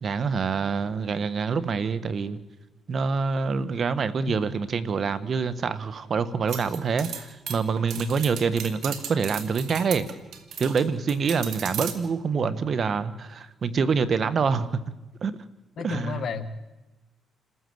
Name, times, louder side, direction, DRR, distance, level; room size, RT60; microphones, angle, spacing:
voice 1, 0.0-2.4 2.9-10.1 10.6-14.8 15.2-15.4 15.8-16.2, right 5 dB, 50° right, 14 dB, 1.3 m, -26 dB
sound 1, 6.5-10.8 11.1-11.9, right 8 dB, 70° right, 2.4 m, -36 dB
voice 2, 15.8-16.5, left 6 dB, 60° left, 8 dB, 1.9 m, -32 dB
28.0 x 14.0 x 7.9 m, 1.1 s
cardioid pair, 90°, 0 cm